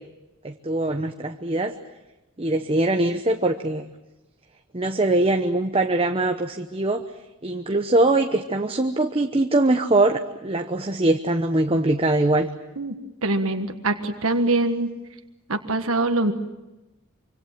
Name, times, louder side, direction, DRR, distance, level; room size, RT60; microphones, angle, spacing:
voice 1, 0.4-1.8 2.4-3.9 4.7-7.0 7.4-12.5, right 2 dB, 25° right, 5 dB, 0.9 m, -22 dB
voice 2, 13.2-14.9 15.5-16.3, right 2 dB, 75° right, 6 dB, 1.6 m, -23 dB
25.5 x 24.5 x 7.5 m, 1.0 s
head